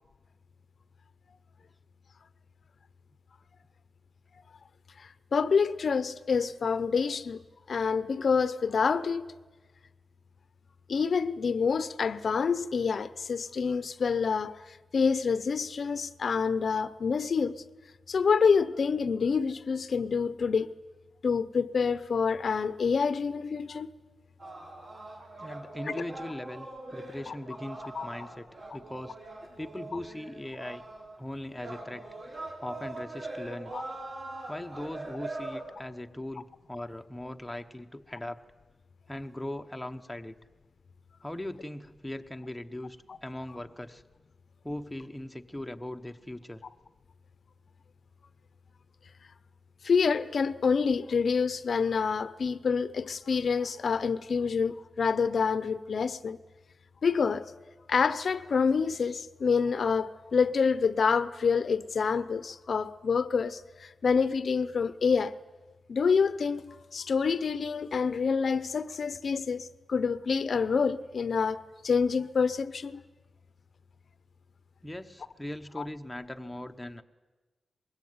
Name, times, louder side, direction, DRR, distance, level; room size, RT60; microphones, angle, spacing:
voice 1, 5.0-7.4 7.7-9.2 10.9-17.6 18.1-20.7 21.2-23.9 25.9-26.0 27.3-27.4 27.9-28.1 33.7-33.8 43.1-43.2 49.8-56.4 57.0-57.5 57.9-65.3 65.9-73.0 75.8-75.9, left 5 dB, 55° left, 0.8 m, -27 dB
sound 1, 24.4-31.2 31.6-35.6, right 2 dB, 50° right, 7.0 m, -42 dB
voice 2, 25.4-28.5 28.7-29.2 29.6-30.8 31.2-32.0 32.6-33.7 34.5-38.4 39.1-40.4 41.2-43.0 43.2-44.0 44.6-46.6 74.8-77.0, left 1 dB, 5° left, 1.0 m, -39 dB
24.0 x 22.0 x 9.6 m
wide cardioid pair, 155°, 0 cm